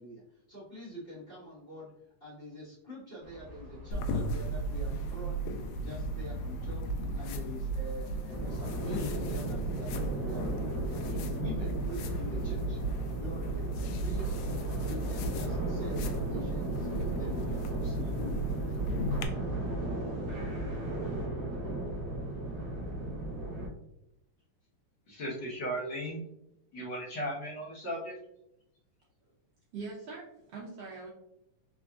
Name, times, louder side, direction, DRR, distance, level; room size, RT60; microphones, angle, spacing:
voice 1, 0.0-5.4 5.8-6.9 7.2-12.8 13.2-14.4 14.8-16.9 17.1-18.1 18.6-19.1, equal, 45° left, -11 dB, 0.7 m, -46 dB
sound 1, 3.2-21.3, equal, 50° right, 1.2 m, -49 dB
sound 2, 3.9-19.2, right 1 dB, 90° left, 1.5 m, -35 dB
sound 3, 8.3-23.7, right 1 dB, 75° right, 1.0 m, -36 dB
voice 2, 25.1-26.2 26.7-28.1, equal, 70° left, -7 dB, 1.0 m, -36 dB
voice 3, 29.7-31.1, right 4 dB, 90° right, -4 dB, 1.3 m, -42 dB
4.5 x 3.7 x 2.3 m, 0.83 s
omnidirectional pair, 3.7 m